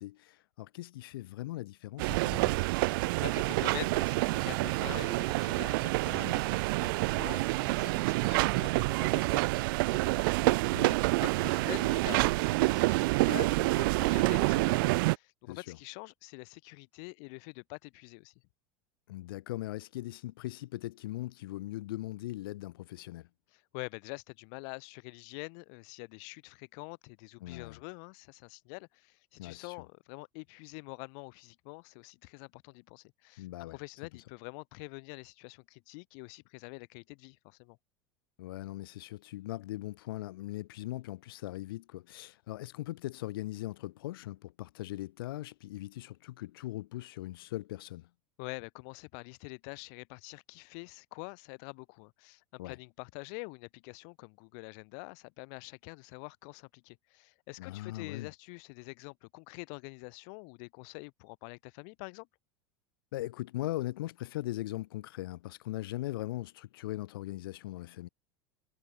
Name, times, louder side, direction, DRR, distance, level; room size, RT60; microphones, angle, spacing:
voice 1, 0.0-2.6 6.1-6.4 10.7-11.0 15.5-15.8 19.1-23.3 27.4-27.8 29.4-29.8 33.4-33.8 38.4-48.1 52.6-52.8 57.6-58.3 63.1-68.1, left 16 dB, 85° left, 0.9 m, -40 dB
sound 1, 2.0-15.2, right 23 dB, 70° right, 0.5 m, -28 dB
voice 2, 2.8-18.3 23.5-37.8 48.4-62.3, left 40 dB or more, 65° left, 3.0 m, -46 dB
supercardioid pair, 120°, 12 cm